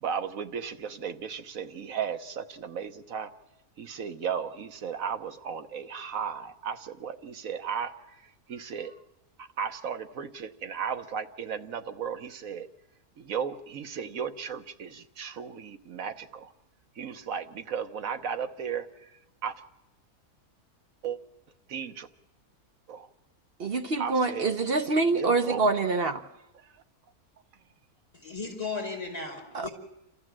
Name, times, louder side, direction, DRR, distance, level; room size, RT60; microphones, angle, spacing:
voice 1, 0.0-3.3 3.8-9.0 9.4-12.7 13.2-16.5 16.9-19.1 19.4-19.5 21.0-21.2 21.7-22.1 22.9-23.1 24.0-24.5 25.1-25.7 26.5-26.8, right 7 dB, 65° right, 8 dB, 1.3 m, -35 dB
voice 2, 23.6-26.2 29.5-29.7, right 3 dB, 45° right, 7 dB, 0.9 m, -25 dB
voice 3, 28.2-29.7, left 4 dB, 25° left, 1 dB, 5.0 m, -35 dB
29.0 x 13.5 x 7.5 m, 0.95 s
omnidirectional pair, 1.6 m